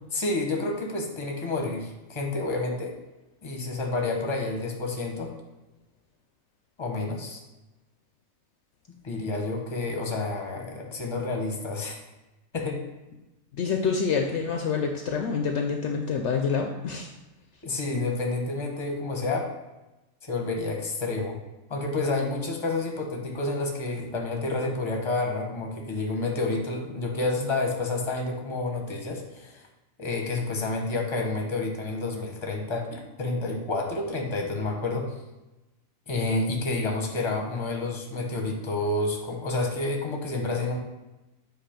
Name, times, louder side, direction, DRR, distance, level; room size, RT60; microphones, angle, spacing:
voice 1, 0.1-2.9 3.4-5.3 6.8-7.4 9.0-12.0 12.5-12.8 17.6-19.5 20.2-21.4 21.7-29.6 30.0-35.1 36.1-40.8, left 2 dB, 25° left, 1 dB, 0.9 m, -29 dB
voice 2, 13.5-17.1, left 5 dB, 70° left, 3 dB, 0.8 m, -27 dB
7.7 x 2.6 x 5.0 m, 1.0 s
omnidirectional pair, 1.4 m